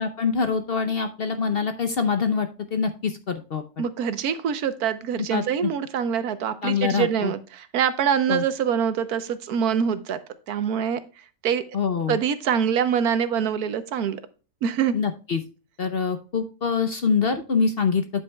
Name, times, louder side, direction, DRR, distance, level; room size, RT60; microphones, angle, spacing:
voice 1, 0.0-3.8 5.3-5.7 6.6-7.3 8.3-8.4 11.7-12.2 14.9-15.4 15.8-18.0, left 5 dB, 50° left, 8 dB, 0.8 m, -25 dB
voice 2, 3.8-10.2 10.5-11.0 11.4-11.6 12.1-14.2 14.6-14.9, right 8 dB, 75° right, 12 dB, 1.3 m, -24 dB
9.5 x 8.3 x 2.3 m, 0.34 s
omnidirectional pair, 1.6 m